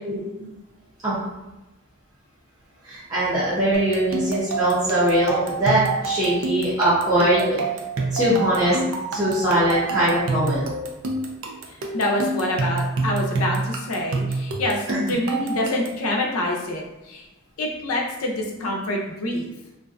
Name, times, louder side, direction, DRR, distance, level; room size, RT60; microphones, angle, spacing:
voice 1, 0.1-0.5 1.0-1.2 2.8-7.6 8.1-8.8 9.1-10.6 14.9-15.0, right 1 dB, 15° right, -12 dB, 0.6 m, -21 dB
sound 1, 3.7-16.1, right 3 dB, 65° right, 0.4 m, -28 dB
voice 2, 11.7-17.3 17.6-19.5, left 1 dB, 85° left, -1 dB, 0.5 m, -26 dB
2.5 x 2.2 x 2.4 m, 1.0 s
head